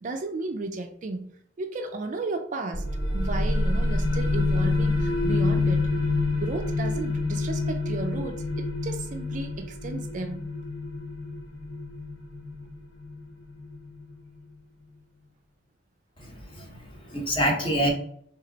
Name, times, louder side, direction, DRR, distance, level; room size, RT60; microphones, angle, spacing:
voice 1, 0.0-1.3 1.6-2.9 3.1-5.9 6.4-10.4, right 3 dB, 40° right, 0.4 m, -34 dB
sound 1, 2.7-14.1, left 2 dB, 75° left, 1.0 m, -27 dB
voice 2, 16.2-17.9, equal, 25° left, 0.9 m, -27 dB
3.2 x 2.9 x 3.7 m
head